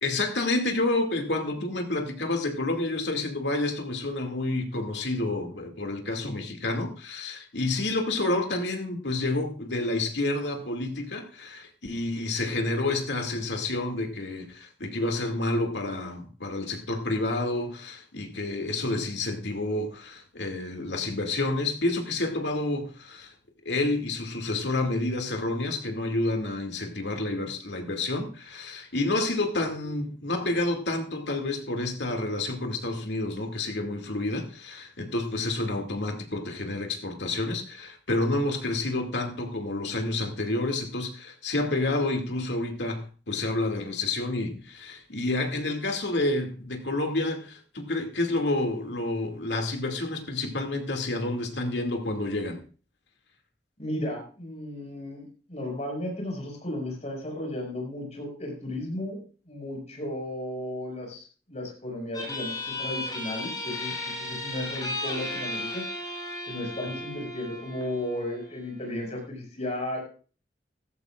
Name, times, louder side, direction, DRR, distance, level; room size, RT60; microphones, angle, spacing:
voice 1, 0.0-23.3 23.6-52.6, left 2 dB, 90° left, 4 dB, 2.4 m, -29 dB
voice 2, 53.8-59.2 59.5-65.8 66.5-70.0, left 1 dB, 40° left, 1 dB, 5.5 m, -34 dB
sound 1, 62.1-69.2, left 2 dB, 20° left, 6.0 m, -35 dB
16.5 x 14.0 x 2.5 m, 0.37 s
head